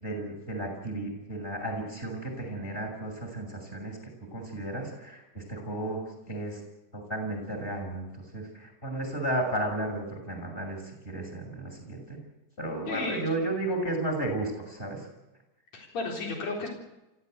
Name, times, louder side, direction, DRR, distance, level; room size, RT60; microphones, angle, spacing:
voice 1, 0.0-4.0 4.3-6.6 6.9-10.8 11.0-12.2 12.6-15.1, right 1 dB, 15° left, 3 dB, 6.7 m, -33 dB
voice 2, 12.9-13.3 15.7-16.7, left 3 dB, 55° left, 1 dB, 5.1 m, -33 dB
24.5 x 15.5 x 8.2 m, 0.98 s
omnidirectional pair, 3.6 m